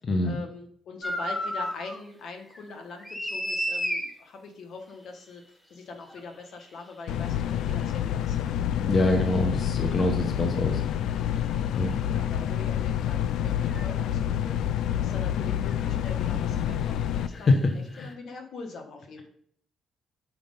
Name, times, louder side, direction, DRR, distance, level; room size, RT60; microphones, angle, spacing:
voice 1, 0.2-5.4 5.7-8.6 12.1-19.3, left 4 dB, 65° left, 4 dB, 1.3 m, -42 dB
sound 1, 1.0-2.0 2.4-4.1 6.1-6.2 9.1-9.2 11.9-12.0 13.7-13.9 15.7-15.9 16.2-16.4, equal, 10° left, 1.1 m, -32 dB
sound 2, 7.1-17.3, left 10 dB, 85° left, 0.3 m, -28 dB
voice 2, 8.9-10.8 11.7-12.0 17.3-18.1, left 2 dB, 45° left, 4 dB, 1.0 m, -25 dB
6.0 x 5.1 x 5.2 m, 0.64 s
cardioid pair, 90°, 0 cm